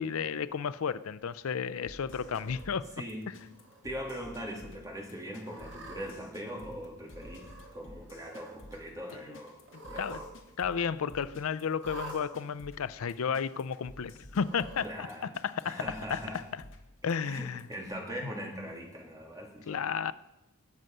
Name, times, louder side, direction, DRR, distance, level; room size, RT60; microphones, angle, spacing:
voice 1, 0.0-2.9 9.1-9.2 10.0-10.2 10.6-15.1 15.4-15.8 16.1-16.2 16.5-16.6 17.0-17.6 19.7-20.1, left 6 dB, 80° left, 15 dB, 0.5 m, -32 dB
sound 1, 1.9-17.9, left 1 dB, 60° left, 1.9 m, -52 dB
Cat, 2.0-2.6 3.4-3.8 4.2-4.3 5.4-6.1 7.1-7.7 8.0-8.6 9.6-10.3 10.6-10.7 11.8-12.2 13.1-13.2 14.3-14.9, right 2 dB, 55° right, 2.6 m, -47 dB
voice 2, 3.0-3.4 3.8-9.6 9.9-10.3 14.8-16.4 17.2-19.8, equal, 15° right, -1 dB, 2.7 m, -41 dB
21.0 x 7.8 x 5.4 m, 0.94 s
head